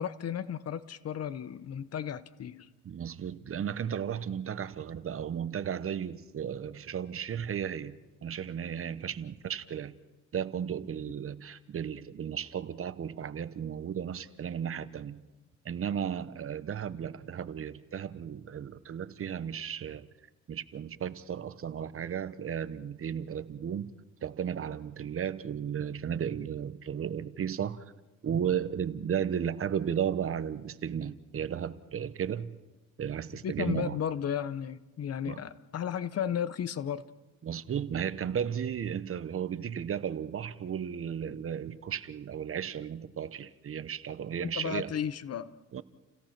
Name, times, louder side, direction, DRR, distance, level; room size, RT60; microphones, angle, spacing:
voice 1, 0.0-2.7 33.4-37.0 44.4-45.5, left 9 dB, 55° left, 0.9 m, -34 dB
voice 2, 2.8-10.0 10.3-15.2 15.6-20.1 20.5-23.9 24.2-27.9 28.2-32.5 33.0-34.0 35.3-35.4 37.4-44.9 45.7-45.8, right 8 dB, 45° right, 1.0 m, -34 dB
29.5 x 17.0 x 6.0 m
cardioid pair, 90°, 30 cm